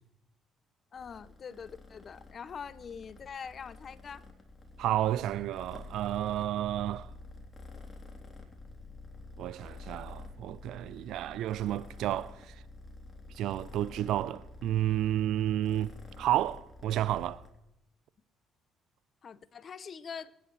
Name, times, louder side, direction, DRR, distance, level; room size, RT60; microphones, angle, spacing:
voice 1, 0.9-4.2 19.2-20.3, left 6 dB, 50° left, 0.8 m, -43 dB
Purr, 0.9-17.5, left 3 dB, 25° left, 3.5 m, -49 dB
voice 2, 4.8-7.1 9.4-12.5 13.4-17.4, right 12 dB, 70° right, 0.6 m, -31 dB
23.0 x 10.0 x 3.3 m
supercardioid pair, 65°, 0 cm